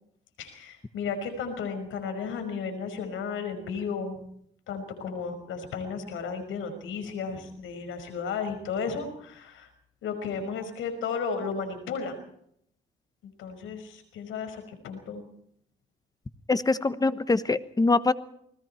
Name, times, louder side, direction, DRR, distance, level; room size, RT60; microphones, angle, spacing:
voice 1, 0.4-4.2 4.7-9.7 10.0-12.2 13.2-15.2, left 5 dB, 80° left, 8 dB, 5.5 m, -34 dB
voice 2, 16.5-18.1, left 3 dB, 20° left, 14 dB, 1.2 m, -24 dB
28.5 x 20.0 x 4.5 m, 0.70 s
cardioid pair, 90°, 20 cm